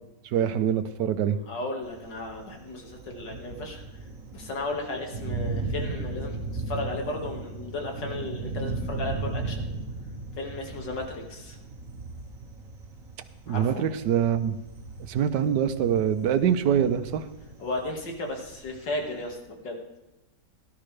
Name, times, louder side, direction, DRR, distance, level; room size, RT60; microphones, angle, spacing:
voice 1, 0.3-1.4 13.5-14.6 15.0-17.2, right 8 dB, 75° right, 11 dB, 1.4 m, -24 dB
voice 2, 1.5-3.8 4.3-9.7 10.4-11.6 13.5-13.8 17.6-19.8, left 2 dB, 80° left, 2 dB, 2.6 m, -34 dB
Thunder, 1.8-19.3, right 3 dB, 50° right, 1.9 m, -37 dB
17.0 x 12.0 x 3.3 m, 0.98 s
omnidirectional pair, 1.9 m